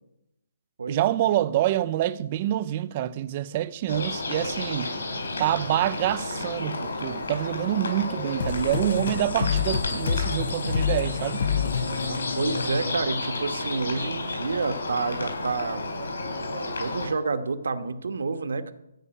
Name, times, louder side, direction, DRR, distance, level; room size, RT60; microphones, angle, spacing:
voice 1, 0.9-4.9 5.4-11.5, right 13 dB, 20° right, 0.4 m, -26 dB
sound 1, 3.9-17.1, left 2 dB, 60° left, 5.0 m, -32 dB
sound 2, 8.4-13.7, left 7 dB, 45° left, 0.4 m, -28 dB
voice 2, 11.8-15.8 16.4-18.7, right 4 dB, 65° right, 1.1 m, -29 dB
13.5 x 5.6 x 9.2 m
hypercardioid pair, 175°, 0 cm